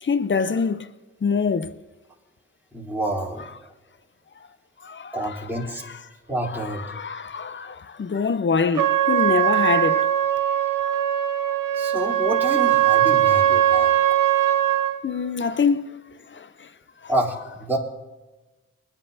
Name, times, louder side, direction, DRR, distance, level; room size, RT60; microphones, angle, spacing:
voice 1, 0.0-0.9 1.2-1.7 4.8-5.5 5.8-6.0 6.4-10.1 13.8-13.9 15.0-15.9 16.3-16.5, left 5 dB, 35° left, 0.8 m, -25 dB
voice 2, 2.7-3.4 5.1-5.8 6.3-6.8 11.7-13.9 17.1-17.8, right 1 dB, 5° right, 3.7 m, -28 dB
Trumpet, 8.8-15.0, right 11 dB, 80° right, 1.1 m, -20 dB
21.0 x 10.5 x 2.8 m
supercardioid pair, 45°, 32 cm